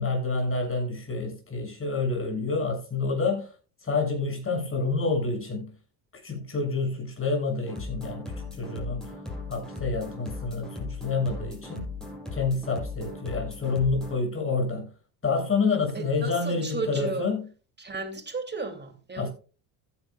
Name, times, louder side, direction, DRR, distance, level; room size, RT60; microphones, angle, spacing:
voice 1, 0.0-3.5 3.8-5.7 6.2-9.1 9.5-11.9 12.3-14.9 15.2-17.4 19.2-19.3, left 4 dB, 30° left, 6.8 m, -28 dB
sound 1, 7.7-14.2, left 3 dB, ahead, 7.0 m, -38 dB
voice 2, 15.9-17.3 17.8-19.3, right 4 dB, 20° right, 2.8 m, -34 dB
15.5 x 10.5 x 2.4 m
supercardioid pair, 90°, 45 cm